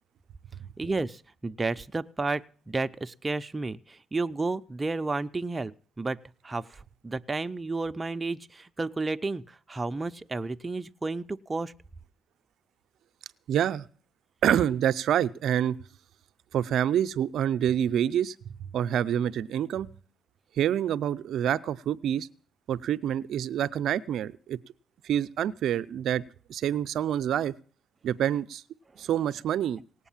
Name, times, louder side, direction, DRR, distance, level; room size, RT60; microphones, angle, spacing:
voice 1, 0.8-6.2 6.4-11.7 29.0-29.1, right 3 dB, 25° right, 10 dB, 0.6 m, -32 dB
voice 2, 13.5-13.8 14.4-15.8 16.5-18.3 18.7-19.9 20.6-22.3 22.7-24.6 25.0-26.2 26.5-27.5 28.0-28.6 29.0-29.8, right 10 dB, 75° right, 14 dB, 0.6 m, -27 dB
18.5 x 8.2 x 7.2 m, 0.43 s
cardioid pair, 90°, 0 cm